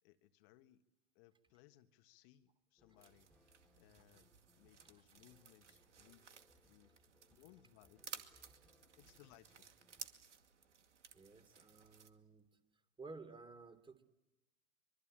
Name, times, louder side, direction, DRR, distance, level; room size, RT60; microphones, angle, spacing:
voice 1, 0.0-0.8 1.1-3.3 3.8-6.3 6.7-6.9 7.3-8.2 9.0-9.7, left 14 dB, 55° left, 9 dB, 1.6 m, -66 dB
sound 1, 2.8-10.1, left 1 dB, 5° left, 2.4 m, -73 dB
sound 2, 3.0-12.1, right 6 dB, 90° right, 2.3 m, -57 dB
voice 2, 11.1-12.4 13.0-14.0, right 3 dB, 15° right, 9 dB, 3.2 m, -54 dB
24.5 x 24.0 x 8.9 m, 0.98 s
hypercardioid pair, 100°, 35 cm